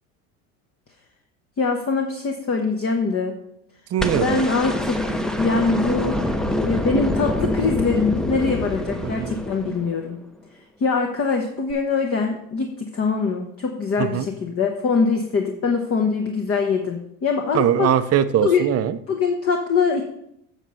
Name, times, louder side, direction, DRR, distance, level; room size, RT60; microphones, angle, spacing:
voice 1, 1.6-3.4 4.2-6.3 6.6-10.2 10.8-17.9 18.4-18.6 19.1-20.0, left 4 dB, 35° left, 3 dB, 1.2 m, -23 dB
voice 2, 3.9-4.4 9.2-9.3 14.0-14.3 17.5-19.0, right 10 dB, 35° right, 12 dB, 0.7 m, -21 dB
sound 1, 4.0-10.2 11.7-11.8, left 1 dB, ahead, 0.8 m, -25 dB
7.7 x 6.6 x 5.6 m, 0.77 s
hypercardioid pair, 80°, 41 cm